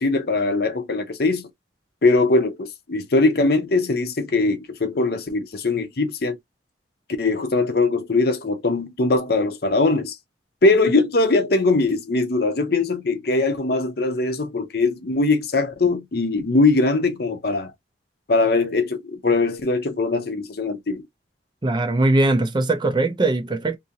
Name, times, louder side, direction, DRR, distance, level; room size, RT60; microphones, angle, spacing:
voice 1, 0.0-1.5 2.0-6.4 7.2-10.2 10.6-17.7 18.3-21.0, left 3 dB, 55° left, 0.6 m, -21 dB
voice 2, 21.6-23.8, right 2 dB, 25° right, 0.4 m, -20 dB
2.7 x 2.5 x 2.7 m
head